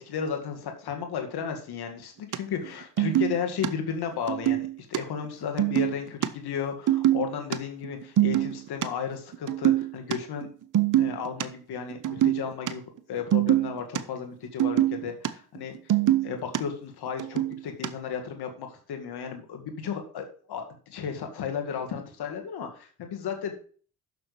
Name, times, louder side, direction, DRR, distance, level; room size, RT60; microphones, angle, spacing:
voice 1, 0.0-10.5 11.0-12.8 13.1-15.8 16.2-23.5, left 7 dB, 70° left, 4 dB, 2.3 m, -34 dB
sound 1, 2.3-2.4 2.6-2.7 3.0-3.7 4.3-5.0 5.2-5.3 5.6-6.3 6.9-7.6 7.8-8.9 9.3-10.2 10.4-10.5 10.7-11.4 11.9-12.7 13.0-14.0 14.4-15.3 15.6-16.6 17.1-17.9, right 13 dB, 50° right, 0.8 m, -24 dB
7.0 x 6.2 x 6.8 m, 0.42 s
supercardioid pair, 60°, 40 cm